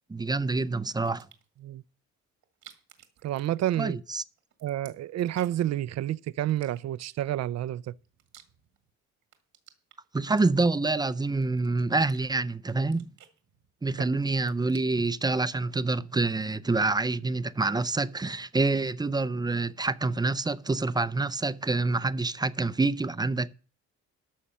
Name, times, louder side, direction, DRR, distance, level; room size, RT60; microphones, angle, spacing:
voice 1, 0.1-1.3 3.8-4.2 10.1-13.1 13.8-23.5, right 3 dB, 15° right, 0.5 m, -27 dB
sound 1, 1.1-1.6 2.4-4.1 4.4-5.8 6.5-7.3 7.8-8.9 9.2-10.9 11.4-12.3 12.6-14.0 14.3-15.2, right 11 dB, 85° right, 1.9 m, -56 dB
voice 2, 3.2-4.0 4.6-7.9, right 12 dB, 60° right, 0.5 m, -29 dB
13.0 x 6.3 x 5.6 m
cardioid pair, 90°, 30 cm